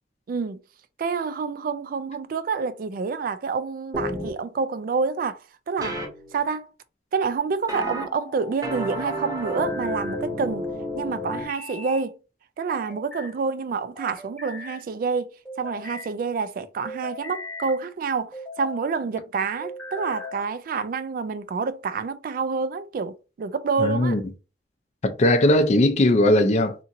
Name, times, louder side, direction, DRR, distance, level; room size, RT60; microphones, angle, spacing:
voice 1, 0.3-0.6 1.0-5.4 5.7-6.0 6.3-6.7 7.1-10.7 10.9-12.2 12.6-24.2, right 5 dB, 50° right, 0.3 m, -28 dB
sound 1, 3.9-4.3 5.8-6.1 7.7-8.0 8.6-11.4, equal, 20° right, 0.8 m, -30 dB
sound 2, 5.8-6.5 7.8-8.6 9.4-10.2 11.3-12.1 12.7-13.3 14.0-14.8 15.5-16.1 16.8-17.8 18.3-18.8 19.6-20.4, left 1 dB, 5° left, 0.9 m, -39 dB
voice 2, 23.8-24.2 25.0-26.8, left 1 dB, 40° left, 0.5 m, -19 dB
2.9 x 2.6 x 2.5 m
head